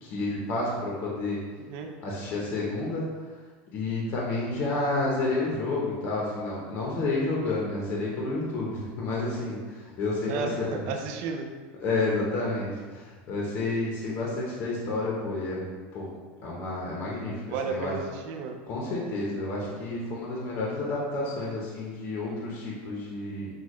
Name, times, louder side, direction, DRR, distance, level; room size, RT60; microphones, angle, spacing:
voice 1, 0.0-1.4 2.0-3.0 3.7-10.8 11.8-15.7 15.9-16.1 16.4-17.9 18.7-23.5, left 2 dB, 35° left, -4 dB, 0.7 m, -30 dB
voice 2, 1.6-1.9 10.2-11.5 17.5-18.6, right 4 dB, 45° right, 3 dB, 0.4 m, -33 dB
6.2 x 2.3 x 3.0 m, 1.4 s
supercardioid pair, 175°, 6 cm